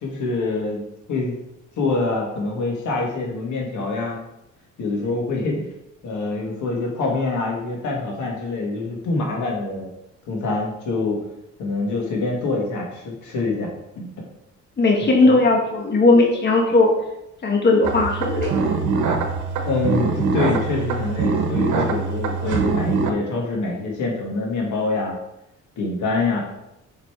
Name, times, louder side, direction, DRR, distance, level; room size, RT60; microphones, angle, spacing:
voice 1, 0.0-0.8 1.1-1.4 1.8-4.2 4.8-5.7 6.0-9.9 10.3-11.2 11.6-14.1 19.6-25.2 25.8-26.4, left 3 dB, 75° left, -1 dB, 2.1 m, -25 dB
voice 2, 14.8-16.9 17.4-18.5, left 3 dB, 35° left, 0 dB, 1.4 m, -17 dB
sound 1, 17.8-23.1, right 4 dB, 75° right, 1.1 m, -23 dB
5.7 x 5.0 x 4.8 m, 0.85 s
cardioid pair, 90°, 30 cm